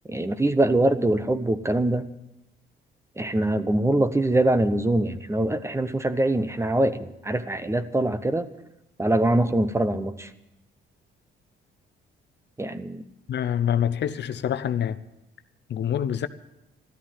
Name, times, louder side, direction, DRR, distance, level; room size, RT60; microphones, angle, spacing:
voice 1, 0.1-2.1 3.2-8.5 9.0-10.3 12.6-13.0, right 1 dB, 15° right, 0.9 m, -23 dB
voice 2, 13.3-15.0 15.7-16.3, left 9 dB, 60° left, 0.8 m, -26 dB
13.0 x 13.0 x 7.3 m
cardioid pair, 90°, 20 cm